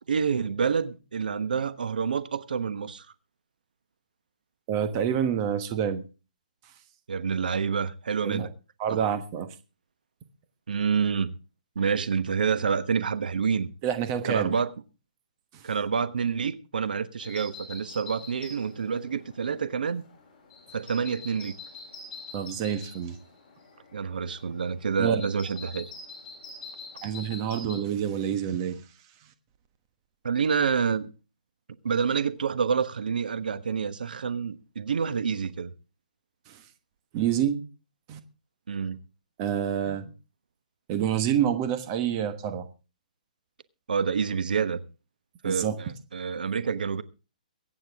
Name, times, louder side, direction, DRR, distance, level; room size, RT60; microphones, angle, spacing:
voice 1, 0.1-3.1 7.1-8.5 8.9-9.1 10.7-11.3 11.7-13.7 14.2-14.7 15.6-20.0 20.7-21.5 23.9-25.9 30.2-31.1 31.8-35.7 38.7-39.0 43.9-44.8 45.4-47.0, right 6 dB, 90° right, 1.2 m, -28 dB
voice 2, 4.7-6.0 8.2-8.5 8.8-9.5 13.8-14.5 22.3-23.2 25.0-25.2 27.0-28.8 36.5-36.6 37.1-37.6 38.1-38.2 39.4-40.1 40.9-42.6 45.4-45.7, right 9 dB, 25° right, 1.2 m, -27 dB
sound 1, 17.2-27.8, left 3 dB, 30° left, 8.0 m, -45 dB
23.0 x 9.0 x 3.6 m
hypercardioid pair, 170°, 5 cm